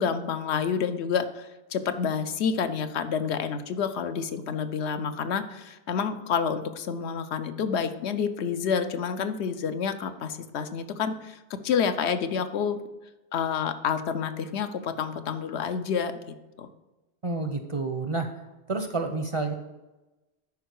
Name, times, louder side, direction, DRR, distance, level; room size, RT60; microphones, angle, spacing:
voice 1, 0.0-12.8 13.3-16.7, left 6 dB, 90° left, 9 dB, 0.9 m, -29 dB
voice 2, 17.2-18.3 18.7-19.5, right 3 dB, 40° right, 6 dB, 0.5 m, -29 dB
11.0 x 4.5 x 4.7 m, 1.1 s
omnidirectional pair, 1.1 m